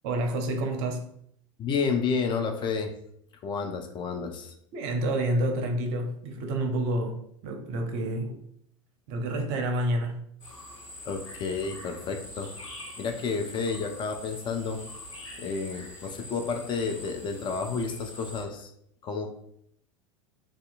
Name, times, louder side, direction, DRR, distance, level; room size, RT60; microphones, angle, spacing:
voice 1, 0.0-1.1 4.7-8.4 9.1-10.2, right 1 dB, 50° right, 0.6 m, -29 dB
voice 2, 1.6-2.9 3.4-4.5 11.0-12.7 13.0-14.8 15.4-18.7 19.0-19.3, left 5 dB, 30° left, 0.4 m, -31 dB
sound 1, 10.4-18.4, left 1 dB, 85° left, 0.7 m, -44 dB
2.6 x 2.3 x 2.5 m
figure-of-eight pair, 80°, 16 cm